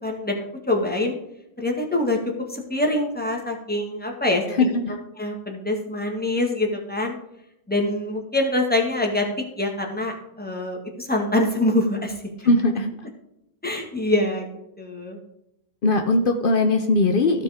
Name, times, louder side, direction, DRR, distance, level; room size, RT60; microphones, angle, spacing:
voice 1, 0.0-1.2 1.6-2.2 2.5-4.7 5.2-7.2 7.7-9.3 9.6-12.1 12.4-12.5 13.6-14.5 14.8-15.2, left 1 dB, 5° left, 1 dB, 1.5 m, -24 dB
voice 2, 4.6-5.0 12.4-12.9 15.8-17.4, left 2 dB, 70° left, 5 dB, 0.5 m, -20 dB
15.5 x 5.1 x 3.6 m, 0.85 s
omnidirectional pair, 1.9 m